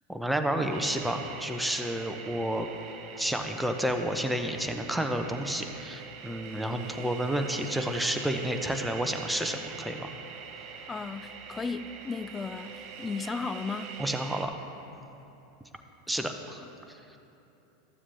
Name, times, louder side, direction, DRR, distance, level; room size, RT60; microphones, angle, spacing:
voice 1, 0.1-2.7 3.2-10.1 14.0-14.5 16.1-17.0, right 1 dB, 5° right, 5 dB, 0.8 m, -30 dB
sound 1, 0.7-14.5, right 6 dB, 50° right, 0.8 m, -43 dB
voice 2, 10.9-14.0 16.6-16.7, left 4 dB, 20° left, 12 dB, 0.3 m, -35 dB
13.5 x 7.3 x 3.4 m, 2.9 s
hypercardioid pair, 85°, 0 cm